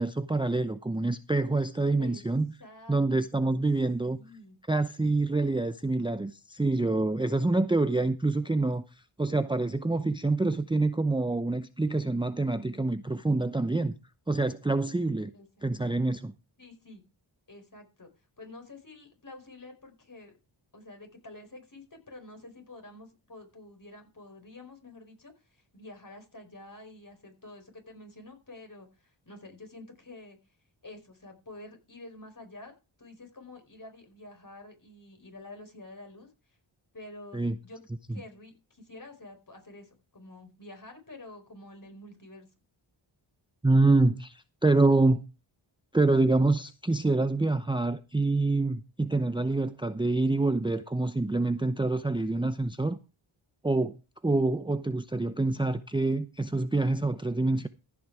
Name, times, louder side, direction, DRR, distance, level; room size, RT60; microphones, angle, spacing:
voice 1, 0.0-2.5 2.9-4.2 4.7-8.8 9.2-13.9 14.3-15.3 15.6-16.3 37.3-37.5 43.6-45.2 45.9-53.0 53.6-54.0 54.2-57.7, right 2 dB, 10° right, 0.7 m, -26 dB
voice 2, 2.6-3.0 3.4-3.7 4.0-4.6 15.3-15.5 16.6-17.0 17.5-18.1 18.4-20.3 20.7-30.4 30.8-36.3 36.9-37.8 38.1-42.5, left 2 dB, 40° left, 4.8 m, -48 dB
15.0 x 6.2 x 4.8 m
cardioid pair, 50°, 49 cm